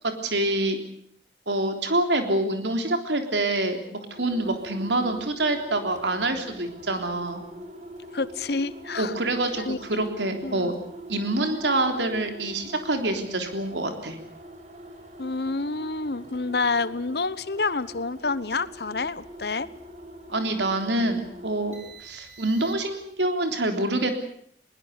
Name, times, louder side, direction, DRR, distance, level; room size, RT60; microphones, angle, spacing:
voice 1, 0.0-0.8 1.5-7.4 9.0-10.7 11.1-14.2 20.3-21.8 22.0-24.1, right 2 dB, 85° right, 6 dB, 3.5 m, -26 dB
sound 1, 4.1-23.1, right 1 dB, 40° right, 4.4 m, -43 dB
voice 2, 8.1-9.1 9.5-9.8 10.4-10.7 15.2-19.7, left 3 dB, 65° left, 17 dB, 1.0 m, -28 dB
21.5 x 20.5 x 8.3 m, 0.64 s
head